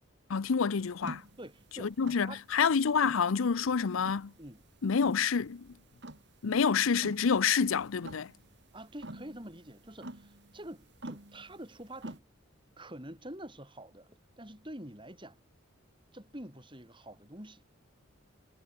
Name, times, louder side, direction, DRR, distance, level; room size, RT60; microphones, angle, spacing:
voice 1, 0.3-1.2 1.8-4.3 4.8-5.7 6.4-8.3, left 6 dB, 80° left, 0.6 m, -28 dB
sound 1, 1.0-12.2, right 1 dB, 55° right, 2.9 m, -48 dB
voice 2, 1.4-1.9 2.2-2.4 3.6-4.0 4.4-4.6 8.7-12.2 12.8-15.4 16.1-17.6, right 1 dB, 25° right, 7.6 m, -47 dB
head